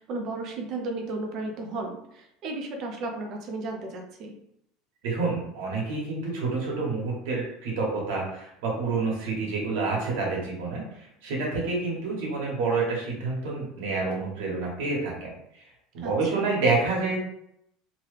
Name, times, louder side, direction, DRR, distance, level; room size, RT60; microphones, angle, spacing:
voice 1, 0.0-4.3 16.0-16.5, right 2 dB, 45° right, 3 dB, 0.6 m, -34 dB
voice 2, 5.0-15.3 15.9-17.2, right 3 dB, 85° right, -3 dB, 1.1 m, -28 dB
2.9 x 2.3 x 3.2 m, 0.76 s
cardioid pair, 165°, 0 cm